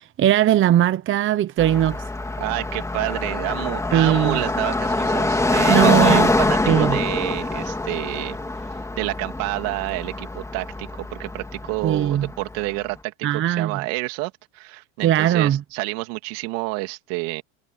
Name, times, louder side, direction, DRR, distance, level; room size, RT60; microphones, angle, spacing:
voice 1, 0.0-2.0 3.9-4.4 5.7-6.3 6.7-7.0 11.8-12.3 13.2-13.8 15.0-15.6, right 11 dB, 30° right, 0.9 m, -19 dB
Car passing by, 1.6-12.7, left 2 dB, 5° left, 2.6 m, -24 dB
voice 2, 2.4-8.4 8.7-17.4, right 24 dB, 65° right, 3.1 m, -29 dB
supercardioid pair, 130°, 41 cm